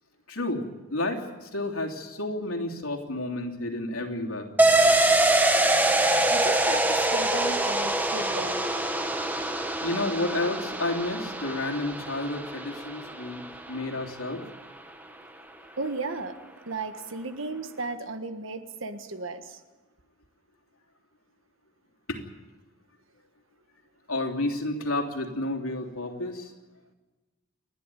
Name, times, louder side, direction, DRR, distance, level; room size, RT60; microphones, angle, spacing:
voice 1, 0.3-0.6 0.9-4.5 5.9-6.1 9.8-14.4 22.1-22.2 24.1-26.5, left 2 dB, 85° left, 1 dB, 3.1 m, -31 dB
sound 1, 4.6-14.0 14.3-14.4, right 2 dB, 10° right, 1.2 m, -24 dB
voice 2, 6.3-8.6 15.8-16.4 16.6-19.6, right 3 dB, 65° right, 8 dB, 1.5 m, -35 dB
29.5 x 11.5 x 9.3 m, 1.2 s
head